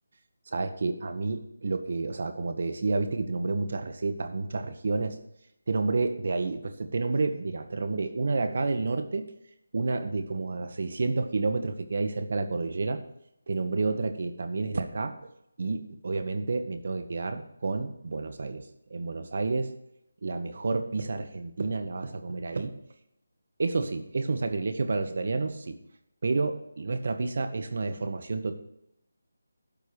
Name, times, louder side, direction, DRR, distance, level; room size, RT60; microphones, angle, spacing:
voice 1, 0.5-5.1 5.7-9.3 9.7-13.0 13.5-15.3 15.6-19.7 20.2-22.7 23.6-25.8 26.2-28.6, right 3 dB, 55° right, 8 dB, 1.2 m, -30 dB
12.0 x 4.6 x 6.8 m, 0.78 s
figure-of-eight pair, 165°, 0 cm